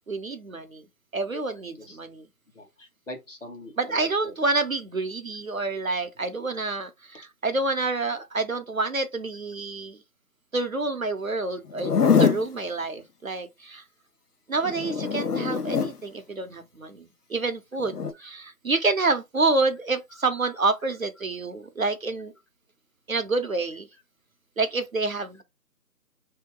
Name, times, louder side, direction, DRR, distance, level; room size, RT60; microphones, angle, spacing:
voice 1, 0.1-0.9 1.1-2.3 3.8-10.0 10.5-11.9 12.2-13.8 14.5-22.3 23.1-23.9 24.6-25.4, right 3 dB, 55° right, 0.7 m, -28 dB
voice 2, 2.5-4.3 20.1-20.2, left 1 dB, 50° left, 1.2 m, -42 dB
Zipper (clothing), 11.7-12.5 14.6-16.0 17.8-18.1, left 6 dB, 65° left, 0.7 m, -23 dB
3.7 x 2.8 x 3.6 m
figure-of-eight pair, 175°, 49 cm